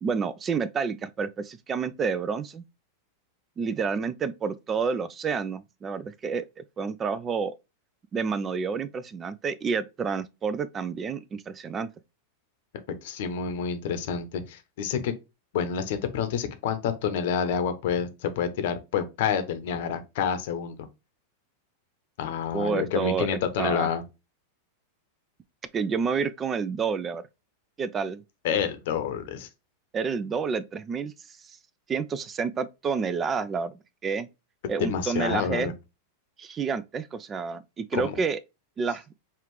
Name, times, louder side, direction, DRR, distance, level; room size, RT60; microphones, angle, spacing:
voice 1, 0.0-2.6 3.6-7.5 8.1-11.9 22.5-23.3 23.6-23.9 25.7-27.2 27.8-28.2 29.9-31.4 31.9-33.7 34.0-34.3 34.7-35.7 36.4-38.4 38.8-39.2, right 5 dB, 25° right, 0.4 m, -29 dB
voice 2, 13.0-15.1 15.5-20.9 22.2-24.0 28.4-29.5 34.8-35.7 37.9-38.1, left 7 dB, 60° left, 0.8 m, -28 dB
5.5 x 2.4 x 3.1 m
figure-of-eight pair, 95°, 0 cm